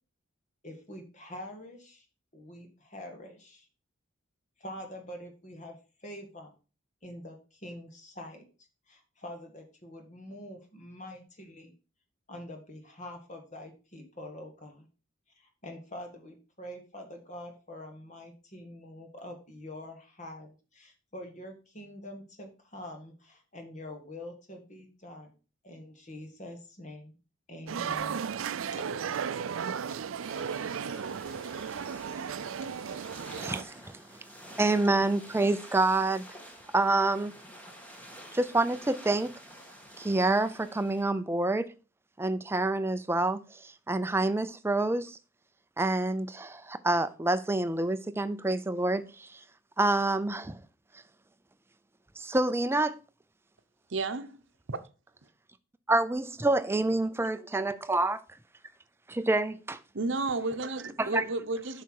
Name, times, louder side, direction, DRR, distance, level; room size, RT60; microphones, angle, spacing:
voice 1, 0.6-2.1 2.3-3.7 4.6-5.8 6.0-6.5 7.0-8.4 8.9-11.7 12.3-14.9 15.4-25.3 25.6-27.2 27.5-28.2 28.8-29.2 30.3-30.4, left 1 dB, 35° left, 1.8 m, -45 dB
sound 1, 27.7-33.6, right 7 dB, 80° right, 0.4 m, -35 dB
sound 2, 30.2-41.0, equal, 10° left, 1.5 m, -49 dB
voice 2, 33.4-34.0 34.6-36.2 36.7-37.3 38.3-39.3 40.0-41.7 42.2-45.2 45.8-49.4 49.8-50.6 52.2-53.0 55.9-58.2 59.1-59.8 61.0-61.2, right 2 dB, 10° right, 0.4 m, -27 dB
voice 3, 53.9-54.4 54.7-54.8 59.9-61.8, right 3 dB, 65° right, 0.8 m, -32 dB
8.0 x 5.8 x 4.7 m
head